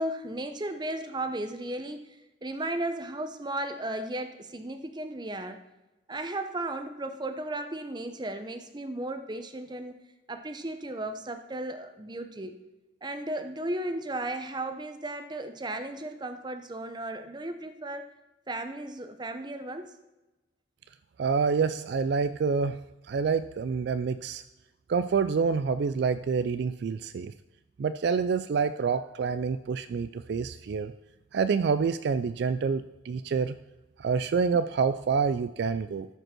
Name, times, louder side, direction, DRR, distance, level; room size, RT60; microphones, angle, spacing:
voice 1, 0.0-2.1 2.4-5.6 6.1-10.0 10.3-12.6 13.0-18.1 18.5-20.0, right 1 dB, 20° right, 8 dB, 0.7 m, -35 dB
voice 2, 21.2-22.8 23.1-24.4 24.9-27.3 27.8-30.9 31.3-33.6 34.0-36.1, right 5 dB, 55° right, 12 dB, 0.3 m, -27 dB
13.5 x 5.3 x 6.1 m, 1.1 s
head